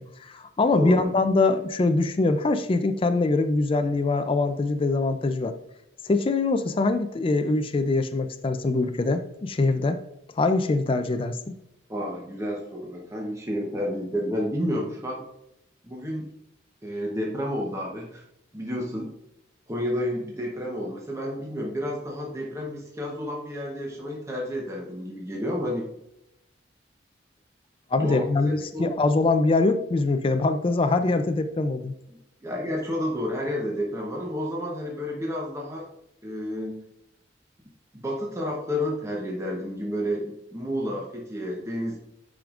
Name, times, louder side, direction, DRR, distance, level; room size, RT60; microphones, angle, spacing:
voice 1, 0.0-5.5 6.0-10.0 10.4-11.4 27.9-31.9, left 3 dB, 30° left, 9 dB, 0.4 m, -23 dB
voice 2, 0.7-1.1 11.9-15.2 15.8-16.3 16.8-18.2 18.5-19.1 19.7-25.8 28.0-28.9 32.4-35.9 36.2-36.8 37.9-42.0, equal, 15° right, -2 dB, 0.8 m, -30 dB
9.1 x 5.0 x 2.4 m, 0.85 s
head